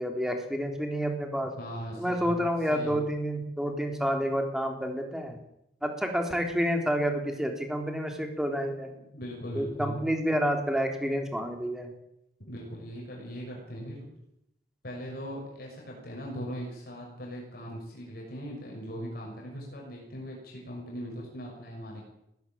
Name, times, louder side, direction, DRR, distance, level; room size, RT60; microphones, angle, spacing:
voice 1, 0.0-1.5 2.0-5.4 5.8-8.9 9.5-11.9, equal, 5° right, 4 dB, 3.7 m, -29 dB
voice 2, 1.6-3.0 9.1-10.0 12.4-14.1 14.8-22.0, equal, 60° left, -1 dB, 6.3 m, -39 dB
20.0 x 16.5 x 8.9 m, 0.82 s
head